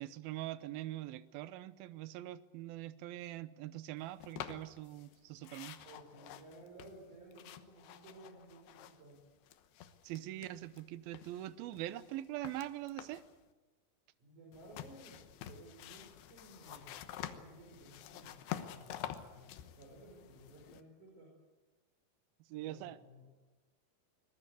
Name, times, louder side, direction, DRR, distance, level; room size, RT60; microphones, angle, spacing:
voice 1, 0.0-5.8 10.0-13.2 22.5-23.0, right 14 dB, 75° right, 14 dB, 2.5 m, -43 dB
sound 1, 4.2-5.2 5.4-9.2 9.4-10.8 11.1-13.3 14.5-20.8, left 11 dB, 80° left, 3.2 m, -48 dB
voice 2, 5.8-9.2 14.2-16.9 17.3-21.3 22.5-23.3, right 1 dB, 50° right, 0 dB, 6.3 m, -56 dB
24.5 x 20.5 x 8.3 m, 1.2 s
omnidirectional pair, 4.7 m